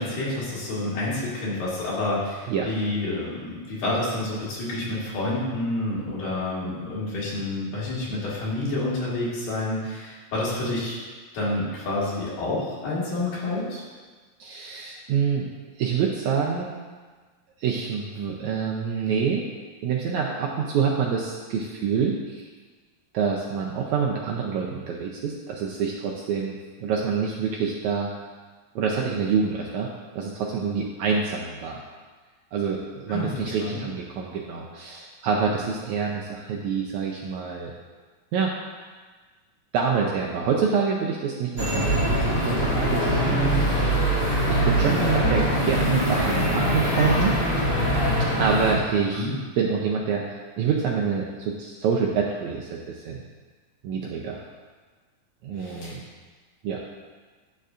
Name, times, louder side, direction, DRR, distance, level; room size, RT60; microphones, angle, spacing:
voice 1, 0.0-11.0 11.3-13.8 33.1-33.8 49.1-49.3 55.6-56.0, left 2 dB, 75° left, -8 dB, 3.7 m, -29 dB
voice 2, 14.4-15.5 15.8-16.7 17.6-19.5 19.8-22.5 23.1-28.1 28.8-31.8 32.5-37.7 38.3-38.5 39.7-47.4 48.4-49.3 49.6-53.2 53.8-54.4 55.4-56.0 56.6-56.8, right 6 dB, 80° right, -1 dB, 1.7 m, -27 dB
sound 1, 41.6-48.7, equal, 25° left, 1.4 m, -23 dB
11.0 x 6.7 x 2.5 m, 1.4 s
omnidirectional pair, 3.9 m